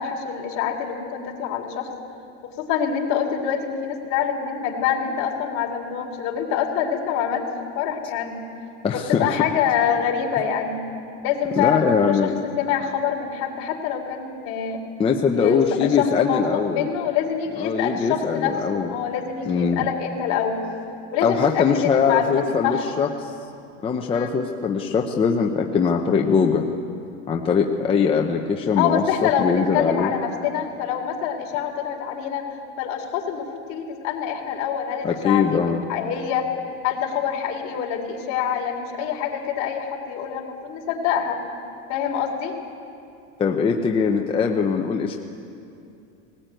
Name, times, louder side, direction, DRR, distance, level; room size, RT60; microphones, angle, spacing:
voice 1, 0.0-1.9 2.4-7.4 7.7-8.4 8.9-10.8 11.2-12.3 12.6-14.8 15.3-20.7 21.1-22.8 24.1-24.3 28.8-32.5 32.8-36.5 36.8-41.4 41.9-42.5, left 8 dB, 50° left, 0 dB, 3.4 m, -25 dB
voice 2, 8.8-9.4 11.6-12.3 15.0-16.9 17.6-18.9 19.5-19.8 21.2-23.3 23.8-26.6 27.3-30.1 35.0-35.8 43.4-45.2, left 6 dB, 15° left, 1 dB, 0.7 m, -21 dB
19.5 x 18.5 x 9.1 m, 2.6 s
cardioid pair, 165°, 35 cm